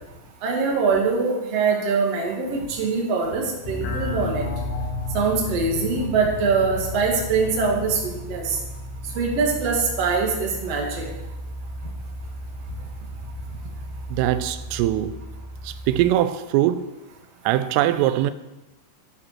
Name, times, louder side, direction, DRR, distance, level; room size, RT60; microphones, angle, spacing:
voice 1, 0.4-4.4 5.1-8.6 9.1-11.0, right 4 dB, 40° right, 2.8 m, -23 dB
sound 1, 3.6-16.1, left 2 dB, 70° left, 4.1 m, -33 dB
voice 2, 14.1-15.2 15.6-16.9 17.5-18.3, right 13 dB, 90° right, 3.2 m, -22 dB
13.5 x 9.8 x 6.1 m
omnidirectional pair, 5.7 m